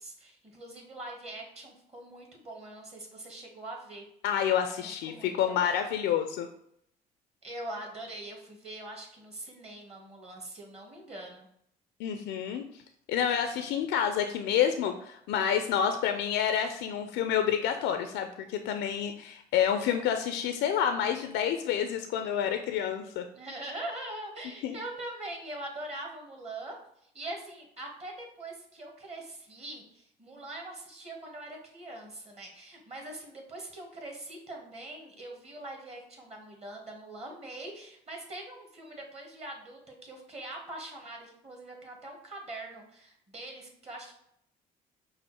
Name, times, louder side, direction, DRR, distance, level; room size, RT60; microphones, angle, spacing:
voice 1, 0.0-4.0 4.8-5.8 7.4-11.5 23.3-26.8 27.0-44.1, right 1 dB, 35° right, 0 dB, 1.7 m, -43 dB
voice 2, 4.2-6.5 12.0-12.6 13.1-23.2 24.6-24.8, left 9 dB, 70° left, 7 dB, 0.4 m, -28 dB
5.4 x 2.1 x 4.3 m, 0.72 s
hypercardioid pair, 65°, 19 cm